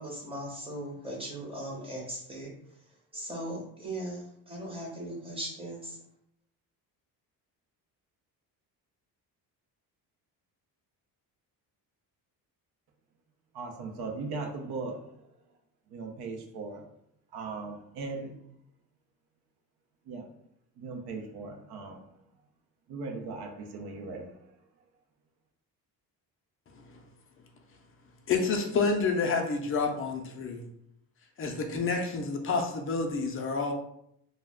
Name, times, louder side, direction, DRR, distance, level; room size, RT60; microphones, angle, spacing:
voice 1, 0.0-2.5 3.1-6.0, right 1 dB, 15° right, -3 dB, 0.7 m, -38 dB
voice 2, 13.5-15.0 15.9-16.8 17.3-18.3 20.1-20.3 20.8-22.1 22.9-24.5, right 3 dB, 80° right, 3 dB, 0.6 m, -38 dB
voice 3, 28.3-30.7 31.4-33.7, left 4 dB, 35° left, 3 dB, 0.4 m, -29 dB
2.2 x 2.1 x 3.5 m, 0.72 s
cardioid pair, 150°, 38 cm